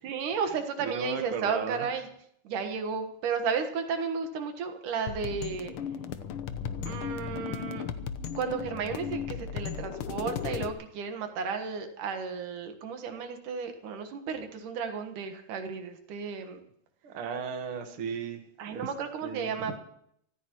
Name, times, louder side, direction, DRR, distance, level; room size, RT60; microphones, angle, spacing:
voice 1, 0.0-2.1 2.4-5.7 6.8-7.8 8.4-16.6 18.6-19.8, right 6 dB, 85° right, 6 dB, 3.0 m, -33 dB
voice 2, 0.8-1.9 17.0-18.9 19.2-19.7, right 6 dB, 50° right, 5 dB, 2.0 m, -36 dB
sound 1, 5.1-10.7, left 8 dB, 90° left, 1.2 m, -36 dB
24.5 x 14.0 x 3.1 m, 0.70 s
omnidirectional pair, 3.6 m